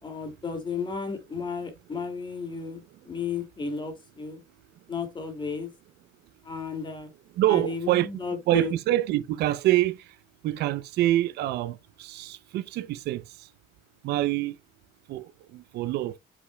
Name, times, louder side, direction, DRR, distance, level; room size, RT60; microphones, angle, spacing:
voice 1, 0.0-4.4 4.9-5.7 6.4-7.1 7.5-8.7, left 5 dB, 30° left, 2.6 m, -33 dB
voice 2, 7.3-8.1 8.5-10.2 10.4-13.5 14.0-14.6 15.1-16.2, right 14 dB, 75° right, 0.6 m, -26 dB
8.4 x 4.9 x 2.3 m
cardioid pair, 110°, 17 cm